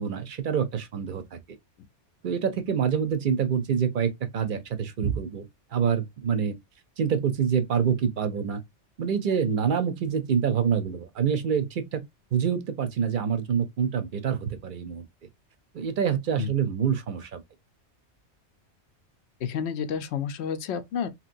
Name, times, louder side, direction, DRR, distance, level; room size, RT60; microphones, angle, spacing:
voice 1, 0.0-1.4 2.2-5.4 5.7-6.5 7.0-8.6 9.0-12.0 12.3-15.0 15.7-17.4, right 7 dB, 55° right, 0.7 m, -26 dB
voice 2, 19.4-21.1, left 7 dB, 70° left, 0.8 m, -30 dB
2.9 x 2.9 x 2.5 m
omnidirectional pair, 1.2 m